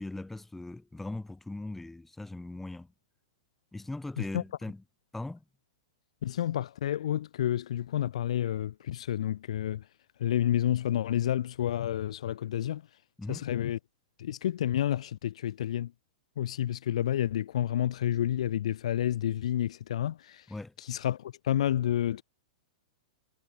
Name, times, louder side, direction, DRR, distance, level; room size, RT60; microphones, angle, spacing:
voice 1, 0.0-2.9 3.7-4.8 5.1-5.4 13.2-13.4 20.5-20.7, left 2 dB, 5° left, 7.7 m, -39 dB
voice 2, 6.2-9.8 10.2-12.8 13.3-13.8 14.2-15.9 16.4-20.5 20.8-22.2, left 11 dB, 65° left, 0.8 m, -30 dB
hypercardioid pair, 110°, 4 cm